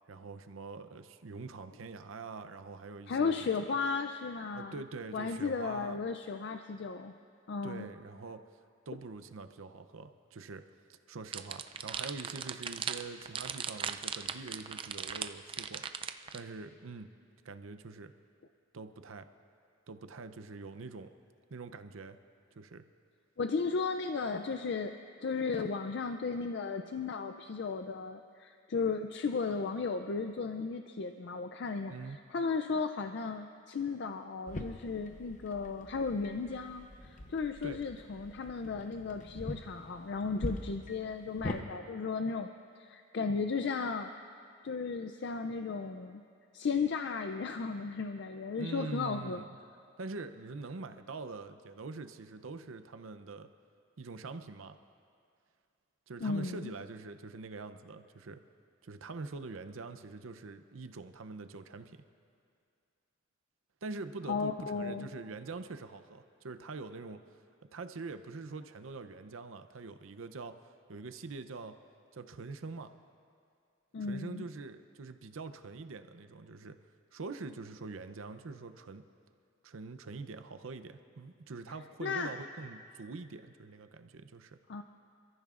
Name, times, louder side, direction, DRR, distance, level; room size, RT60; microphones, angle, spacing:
voice 1, 0.1-3.5 4.5-6.0 7.6-8.4 8.9-10.7 11.1-15.8 16.3-17.1 17.4-18.1 18.7-19.3 19.9-21.1 21.5-22.2 22.6-22.8 31.9-32.2 37.6-37.8 48.6-49.5 50.0-53.5 54.0-54.8 56.1-58.4 58.8-62.0 63.8-67.2 67.7-71.8 72.1-72.9 74.0-76.8 77.1-79.0 79.6-84.6, right 3 dB, 80° right, 9 dB, 0.6 m, -44 dB
voice 2, 3.1-4.8 5.1-7.1 7.5-7.9 23.4-42.5 42.8-44.1 44.6-46.2 46.5-49.4 56.2-56.7 64.3-65.1 73.9-74.5 82.0-82.3 84.7-84.8, left 4 dB, 55° left, 7 dB, 0.4 m, -35 dB
sound 1, 11.3-16.4, right 7 dB, 25° right, 0.4 m, -37 dB
sound 2, 34.5-41.6, left 1 dB, 35° left, 0.8 m, -43 dB
28.0 x 14.0 x 2.5 m, 2.3 s
head